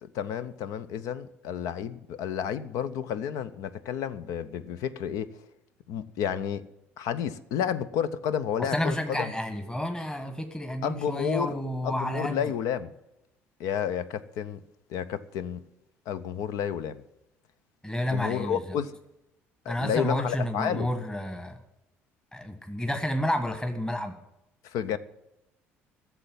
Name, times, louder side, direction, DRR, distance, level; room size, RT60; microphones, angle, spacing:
voice 1, 0.0-5.3 5.9-6.6 7.0-9.3 10.8-11.5 11.8-12.9 13.6-14.6 14.9-15.6 16.1-17.0 18.1-18.9 19.7-20.9 24.6-25.0, left 8 dB, 60° left, 0.6 m, -31 dB
voice 2, 8.6-12.4 17.8-18.8 19.7-21.6 22.3-24.2, left 1 dB, 10° left, 1.4 m, -30 dB
13.5 x 7.1 x 9.3 m
figure-of-eight pair, 55°, 7 cm